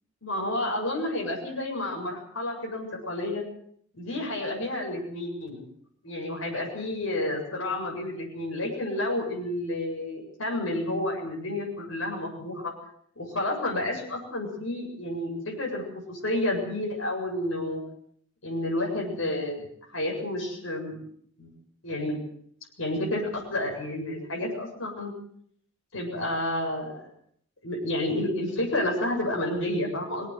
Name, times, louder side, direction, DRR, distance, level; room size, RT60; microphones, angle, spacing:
voice 1, 0.2-3.4 3.9-5.6 6.0-12.7 13.2-17.8 18.4-21.0 21.4-21.5 21.8-22.2 22.8-25.1 25.9-27.1 27.6-30.3, left 1 dB, 80° left, -1 dB, 7.6 m, -30 dB
22.5 x 18.0 x 8.0 m, 0.64 s
head